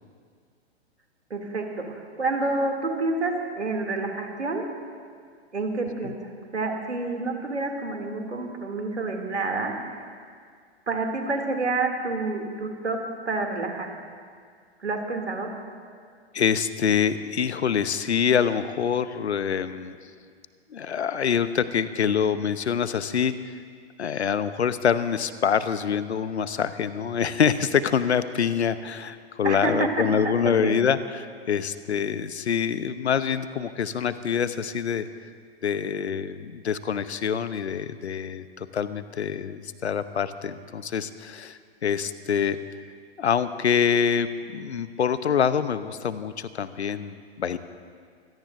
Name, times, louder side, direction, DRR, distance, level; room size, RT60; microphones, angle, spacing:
voice 1, 1.3-4.6 5.5-6.2 6.5-9.7 10.9-13.0 13.3-13.9 14.8-15.5 29.4-30.8, right 3 dB, 85° right, 2 dB, 2.7 m, -28 dB
voice 2, 16.3-19.9 20.7-23.6 24.0-35.1 35.6-42.6 43.2-47.6, left 7 dB, 80° left, 13 dB, 0.8 m, -25 dB
24.5 x 17.0 x 2.6 m, 2.1 s
figure-of-eight pair, 115°, 33 cm